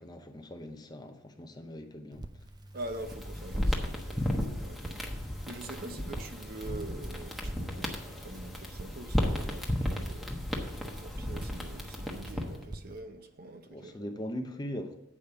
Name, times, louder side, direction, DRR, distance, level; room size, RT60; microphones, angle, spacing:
voice 1, 0.0-2.2 5.9-6.2 13.7-15.0, equal, 20° left, 0.7 m, -41 dB
Crackle, 2.1-13.0, right 1 dB, 20° right, 0.5 m, -48 dB
voice 2, 2.7-10.3 11.0-14.1, right 2 dB, 50° right, 0.8 m, -45 dB
sound 1, 2.8-12.6, left 1 dB, ahead, 1.1 m, -34 dB
8.5 x 5.1 x 6.9 m
head